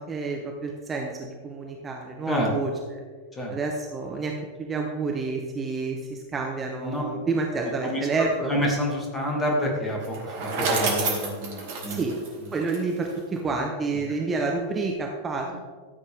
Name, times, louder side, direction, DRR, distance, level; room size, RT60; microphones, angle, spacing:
voice 1, 0.0-2.7 3.5-4.3 4.6-8.5 11.9-12.2 12.5-15.6, right 3 dB, 20° right, 1 dB, 1.1 m, -29 dB
voice 2, 7.5-8.0 8.5-12.0, equal, 15° left, -1 dB, 2.6 m, -28 dB
Bicycle, 10.0-13.2, right 3 dB, 50° right, 2.5 m, -29 dB
13.5 x 7.8 x 3.6 m, 1.5 s
figure-of-eight pair, 90°, 0 cm